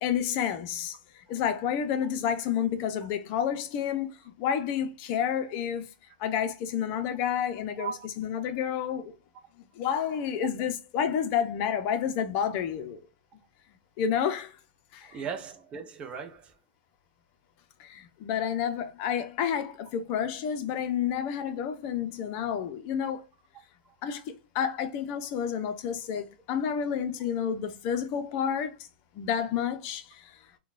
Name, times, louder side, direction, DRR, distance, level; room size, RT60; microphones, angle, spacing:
voice 1, 0.0-4.1 4.4-5.9 6.2-7.9 8.2-9.1 9.8-13.0 14.0-14.6 14.9-15.2 17.8-23.2 24.0-28.7 29.1-30.3, left 8 dB, 40° left, 0.6 m, -30 dB
voice 2, 15.0-16.6 23.8-24.0, right 6 dB, 20° right, 0.7 m, -38 dB
3.7 x 2.2 x 2.4 m
hypercardioid pair, 130°, 5 cm